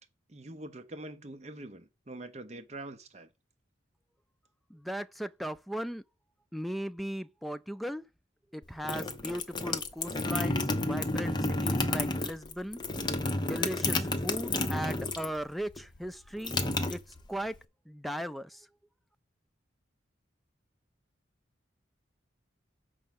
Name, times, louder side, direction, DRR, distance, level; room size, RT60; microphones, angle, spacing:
voice 1, 0.3-3.3, right 2 dB, 35° right, 0.8 m, -44 dB
voice 2, 4.7-6.0 6.5-8.0 8.5-11.4 11.6-12.8 13.4-16.6 16.9-17.0 17.3-17.6 17.9-18.5, equal, ahead, 0.3 m, -37 dB
sound 1, 8.6-15.4 15.7-17.6, left 2 dB, 25° left, 0.7 m, -31 dB
6.4 x 4.7 x 5.9 m
head